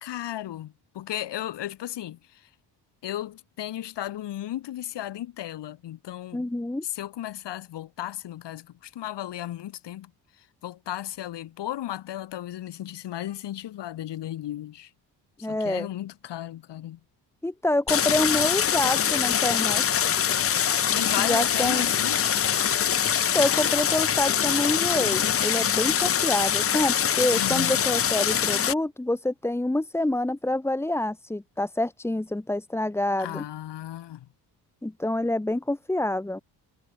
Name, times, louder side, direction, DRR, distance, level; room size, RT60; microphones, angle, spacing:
voice 1, 0.0-2.5 3.0-6.5 6.8-10.1 10.4-14.9 15.5-17.0 20.9-22.2 27.3-27.8 33.2-34.3, left 13 dB, 70° left, 3.6 m, -35 dB
voice 2, 6.3-6.8 15.4-15.9 17.4-20.1 21.2-21.9 23.3-33.4 34.8-36.4, left 1 dB, 5° left, 1.2 m, -27 dB
Stream, 17.9-28.7, left 9 dB, 30° left, 0.8 m, -24 dB
cardioid pair, 175°, 44 cm